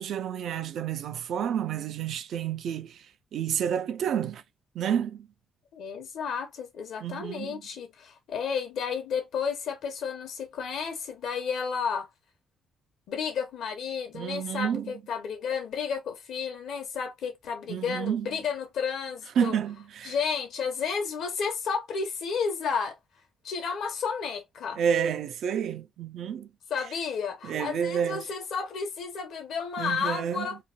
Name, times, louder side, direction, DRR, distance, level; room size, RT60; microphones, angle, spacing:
voice 1, 0.0-3.1 3.3-4.4 4.7-5.3 7.0-7.6 14.1-14.9 17.7-18.3 19.4-20.2 24.8-26.5 27.4-28.3 29.8-30.5, right 8 dB, 75° right, 0.4 m, -30 dB
voice 2, 5.7-12.1 13.1-19.6 20.0-23.0 23.4-24.8 26.7-30.6, left 6 dB, 75° left, 0.9 m, -32 dB
3.0 x 2.1 x 2.4 m
cardioid pair, 90°, 0 cm